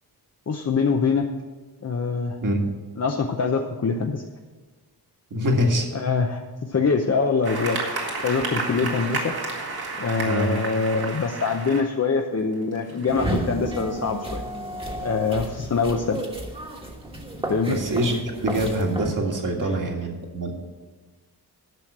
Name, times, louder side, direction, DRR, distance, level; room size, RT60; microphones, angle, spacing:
voice 1, 0.5-1.3 1.8-2.4 3.0-4.2 5.9-6.4 6.7-7.8 8.2-9.3 10.0-14.4 15.0-16.2 17.5-17.8 19.6-19.7, left 5 dB, 40° left, 3 dB, 0.7 m, -24 dB
voice 2, 5.3-5.9 10.2-10.5 17.7-20.6, equal, 55° right, 2 dB, 1.9 m, -24 dB
sound 1, 7.4-11.8 12.5-13.4, right 3 dB, 70° right, 2.1 m, -31 dB
sound 2, 13.1-19.1, right 1 dB, 15° right, 1.4 m, -32 dB
11.0 x 6.4 x 7.3 m, 1.3 s
wide cardioid pair, 140°, 38 cm